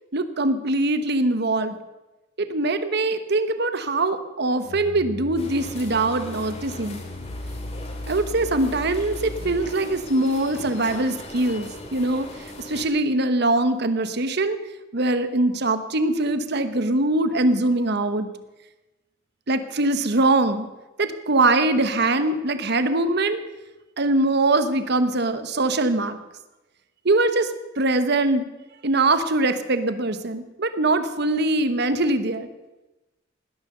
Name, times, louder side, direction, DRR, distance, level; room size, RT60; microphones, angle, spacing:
voice 1, 0.1-1.8 2.4-7.0 8.1-12.3 12.6-14.6 14.9-18.3 19.5-20.7 21.0-23.4 24.0-26.2 27.0-28.5 28.8-32.5, right 2 dB, 60° right, 10 dB, 1.1 m, -22 dB
sound 1, 4.6-10.1, left 1 dB, 75° left, 0.8 m, -37 dB
sound 2, 5.4-12.9, left 1 dB, 35° left, 2.4 m, -39 dB
18.5 x 10.5 x 6.7 m, 1.1 s
head